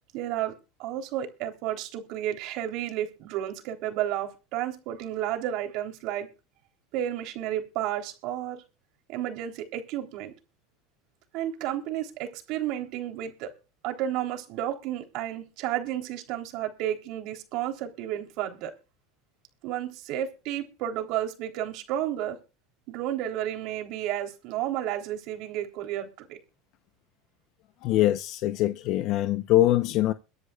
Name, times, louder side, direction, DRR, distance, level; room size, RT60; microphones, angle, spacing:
voice 1, 0.1-0.5 0.8-6.3 6.9-8.6 9.1-10.3 11.3-13.5 13.8-18.7 19.6-22.4 22.9-26.4, right 11 dB, 55° right, 3.6 m, -32 dB
voice 2, 27.8-30.1, left 15 dB, 50° left, 0.8 m, -23 dB
23.5 x 10.0 x 2.4 m
supercardioid pair, 135°, 0 cm